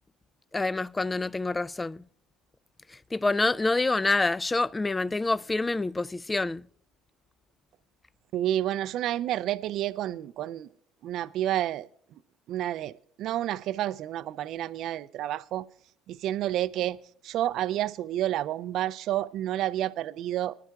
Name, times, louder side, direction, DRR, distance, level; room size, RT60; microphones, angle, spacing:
voice 1, 0.5-2.0 2.9-6.7, left 3 dB, 20° left, 0.4 m, -27 dB
voice 2, 8.3-10.7 11.0-11.9 12.5-15.7 16.1-17.0 17.2-20.5, right 12 dB, 60° right, 0.4 m, -30 dB
24.0 x 12.0 x 2.3 m
hypercardioid pair, 65°, 0 cm